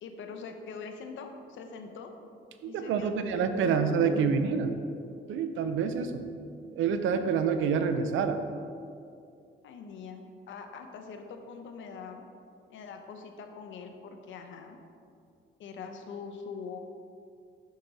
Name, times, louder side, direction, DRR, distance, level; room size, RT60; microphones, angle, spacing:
voice 1, 0.0-2.2 2.7-4.6 9.6-12.2 12.7-14.8 15.6-16.8, left 5 dB, 75° left, 5 dB, 0.8 m, -43 dB
voice 2, 2.6-4.7 5.3-6.2 6.7-8.4, right 6 dB, 80° right, 8 dB, 0.6 m, -27 dB
6.6 x 6.1 x 4.1 m, 2.4 s
cardioid pair, 90°, 20 cm